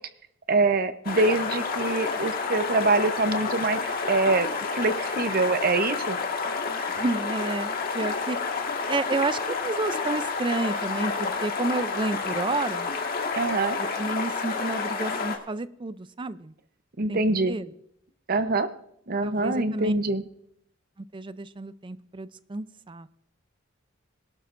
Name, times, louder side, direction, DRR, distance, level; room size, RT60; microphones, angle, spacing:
voice 1, 0.5-6.2 13.4-13.8 17.0-17.6 18.3-18.7 19.1-20.2, right 3 dB, 50° right, 11 dB, 0.8 m, -24 dB
sound 1, 1.0-15.4, left 4 dB, 50° left, 1.8 m, -29 dB
voice 2, 6.9-8.4 8.9-12.9 13.8-16.5 17.1-17.7 19.2-19.9 21.1-23.1, right 3 dB, 25° right, 14 dB, 0.5 m, -30 dB
22.5 x 12.0 x 2.6 m, 0.74 s
head